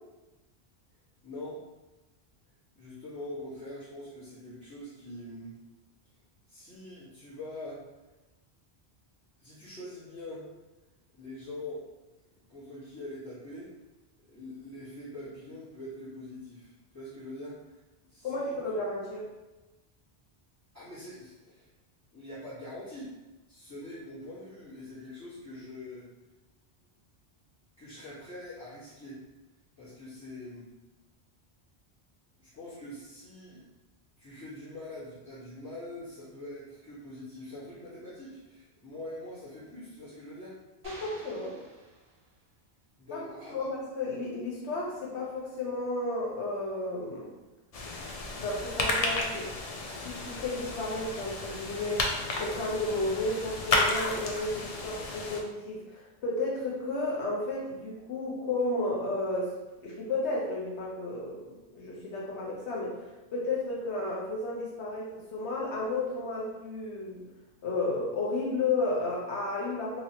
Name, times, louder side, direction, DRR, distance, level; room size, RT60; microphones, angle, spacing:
voice 1, 1.2-1.6 2.7-5.6 6.5-7.8 9.4-10.5 11.1-11.8 12.5-13.7 14.3-17.8 18.1-18.6 20.7-21.7 22.1-23.1 23.5-26.1 27.8-29.2 29.8-30.7 32.4-33.6 34.2-40.6 43.0-43.7, left 1 dB, 15° left, -16 dB, 1.2 m, -43 dB
voice 2, 18.2-19.2 41.0-41.5 43.1-43.2 43.5-47.3 48.3-49.5 49.8-52.1 52.4-59.5 59.8-61.4 61.7-63.0 63.3-67.2 67.6-70.0, left 2 dB, 90° left, -3 dB, 1.1 m, -32 dB
sound 1, 40.8-42.6, right 1 dB, 70° right, 1.1 m, -50 dB
sound 2, 47.7-55.4, left 2 dB, 55° left, 0.4 m, -32 dB
3.0 x 2.8 x 2.8 m, 1.1 s
omnidirectional pair, 1.1 m